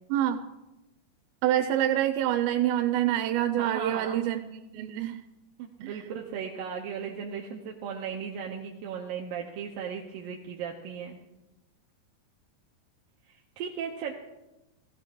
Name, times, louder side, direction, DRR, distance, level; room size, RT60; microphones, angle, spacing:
voice 1, 1.4-4.4 4.7-5.2 5.8-6.0, right 12 dB, 90° right, 7 dB, 2.9 m, -26 dB
voice 2, 3.6-4.3 5.6-11.2 13.3-14.1, right 7 dB, 75° right, 0 dB, 2.2 m, -36 dB
17.0 x 16.0 x 3.7 m, 0.98 s
omnidirectional pair, 5.0 m